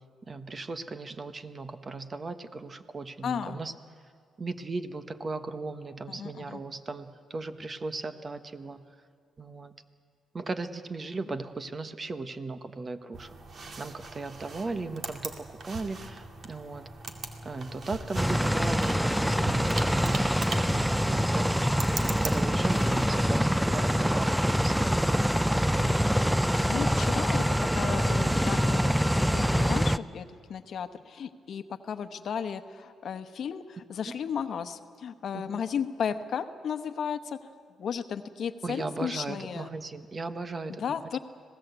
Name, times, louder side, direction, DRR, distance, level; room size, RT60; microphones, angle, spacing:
voice 1, 0.3-3.7 4.4-8.8 9.4-9.7 10.3-13.3 13.8-16.9 17.4-25.2 35.3-35.6 38.6-41.0, right 3 dB, 35° right, 10 dB, 1.2 m, -37 dB
voice 2, 3.2-3.6 6.1-6.6 22.9-23.1 26.6-27.4 27.7-37.4 37.8-39.7 40.7-41.2, left 7 dB, 65° left, 10 dB, 1.1 m, -34 dB
PC Mouse Clicks, 13.1-23.1, right 3 dB, 50° right, 2.3 m, -40 dB
sound 1, 18.1-30.0, equal, ahead, 0.5 m, -25 dB
26.0 x 18.0 x 8.1 m, 2.1 s
cardioid pair, 80°, 0 cm